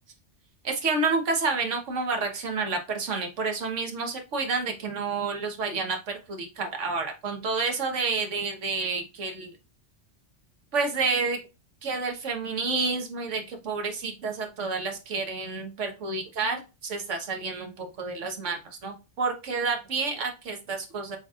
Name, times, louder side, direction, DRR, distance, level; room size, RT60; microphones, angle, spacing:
voice 1, 0.6-9.5 10.7-11.4 11.8-21.2, right 4 dB, 90° right, 4 dB, 1.4 m, -29 dB
6.9 x 3.0 x 2.4 m, 0.28 s
omnidirectional pair, 1.2 m